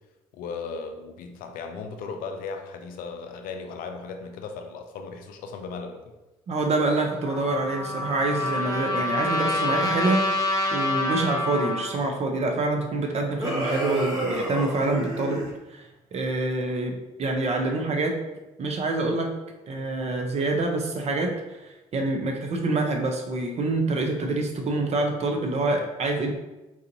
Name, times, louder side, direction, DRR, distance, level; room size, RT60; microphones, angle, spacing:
voice 1, 0.3-6.1, left 4 dB, 70° left, 5 dB, 0.5 m, -36 dB
voice 2, 6.5-10.2 10.7-15.4 15.7-18.2 18.6-19.3 19.7-26.3, right 2 dB, 45° right, 3 dB, 0.7 m, -26 dB
Trumpet, 7.2-11.9, left 2 dB, 25° left, 1.0 m, -27 dB
sound 1, 13.4-15.5, right 1 dB, 25° right, 1.2 m, -29 dB
4.0 x 2.5 x 2.8 m, 1.0 s
supercardioid pair, 65°, 15 cm